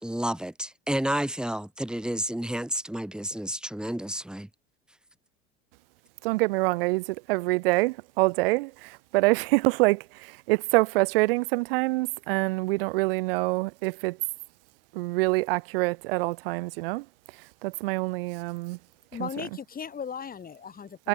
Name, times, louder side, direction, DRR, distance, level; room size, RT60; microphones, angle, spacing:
voice 1, 0.0-4.5, right 1 dB, 5° right, 2.2 m, -30 dB
voice 2, 6.2-14.2 14.9-17.1 17.3-18.8 19.2-19.4 21.0-21.1, right 23 dB, 60° right, 1.2 m, -26 dB
voice 3, 19.1-21.1, left 7 dB, 30° left, 4.0 m, -37 dB
figure-of-eight pair, 70°, 32 cm